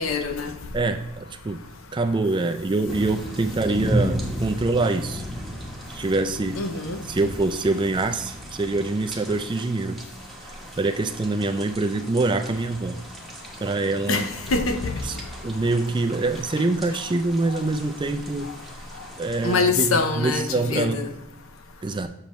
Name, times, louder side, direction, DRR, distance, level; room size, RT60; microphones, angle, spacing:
voice 1, 0.0-0.6 6.6-7.0 14.1-15.1 19.4-21.1, left 4 dB, 65° left, 0.7 m, -24 dB
voice 2, 0.7-1.6 1.9-5.2 5.9-6.6 7.0-10.0 10.4-13.0 13.6-14.3 15.0-18.5 19.2-21.0 21.8-22.1, right 2 dB, 20° right, 0.4 m, -25 dB
sound 1, 2.8-19.6, equal, ahead, 1.1 m, -35 dB
6.8 x 6.7 x 3.1 m
head